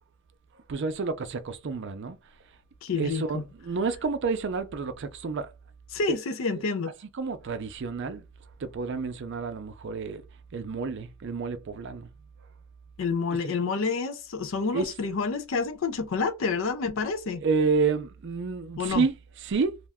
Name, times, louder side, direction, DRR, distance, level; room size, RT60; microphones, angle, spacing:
voice 1, 0.7-2.2 3.0-5.5 6.1-6.2 6.5-6.6 7.1-8.2 8.6-10.2 10.5-12.1 13.4-13.5 14.7-14.9 17.4-19.9, right 4 dB, 55° right, 0.4 m, -29 dB
voice 2, 2.8-3.4 5.9-6.9 13.0-17.4 18.8-19.1, left 4 dB, 60° left, 0.4 m, -28 dB
2.4 x 2.2 x 3.4 m
head